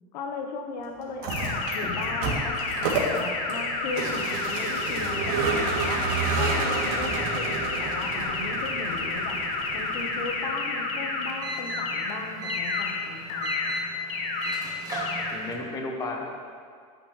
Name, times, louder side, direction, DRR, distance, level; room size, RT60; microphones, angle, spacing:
voice 1, 0.1-6.1 6.3-9.4 9.7-13.8, left 4 dB, 90° left, 4 dB, 1.5 m, -37 dB
Vehicle, 1.1-10.5, right 4 dB, 65° right, 2.9 m, -30 dB
sound 1, 1.3-11.3 11.7-12.1 12.5-12.9 13.3-13.7 14.1-14.5 14.9-15.3, left 4 dB, 55° left, 1.9 m, -30 dB
sound 2, 7.0-15.5, left 2 dB, 15° right, 1.5 m, -37 dB
voice 2, 14.9-16.3, left 2 dB, 15° left, 1 dB, 1.2 m, -35 dB
15.0 x 9.3 x 3.4 m, 2.1 s
supercardioid pair, 155°, 21 cm